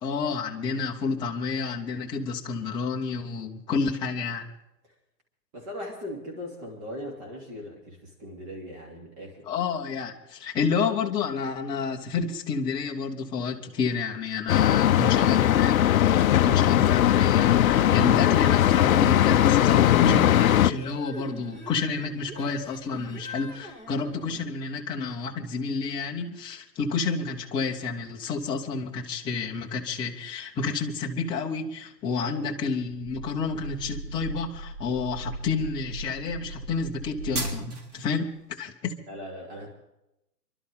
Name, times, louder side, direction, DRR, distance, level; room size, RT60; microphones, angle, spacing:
voice 1, 0.0-4.5 9.5-39.0, left 5 dB, 10° left, -1 dB, 0.8 m, -30 dB
voice 2, 5.5-9.5 32.2-32.4 39.1-39.7, left 1 dB, 30° right, -1 dB, 3.3 m, -39 dB
sound 1, 14.5-20.7, left 12 dB, 55° left, 0.6 m, -19 dB
sound 2, 17.6-24.4, left 1 dB, 15° right, 1.2 m, -42 dB
sound 3, 32.9-38.0, right 2 dB, 70° right, 4.3 m, -36 dB
25.0 x 12.0 x 3.7 m, 0.87 s
hypercardioid pair, 140°, 49 cm